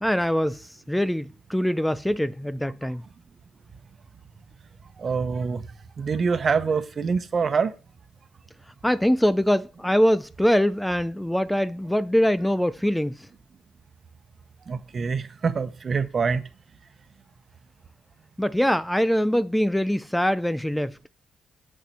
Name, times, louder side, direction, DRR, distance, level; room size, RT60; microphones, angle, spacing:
voice 1, 0.0-3.0 8.8-13.3 18.4-21.0, equal, 5° left, 0.3 m, -23 dB
voice 2, 5.0-5.6 6.0-7.7 14.7-16.4, right 5 dB, 45° right, 1.0 m, -25 dB
7.5 x 6.7 x 4.6 m
cardioid pair, 95°, 0 cm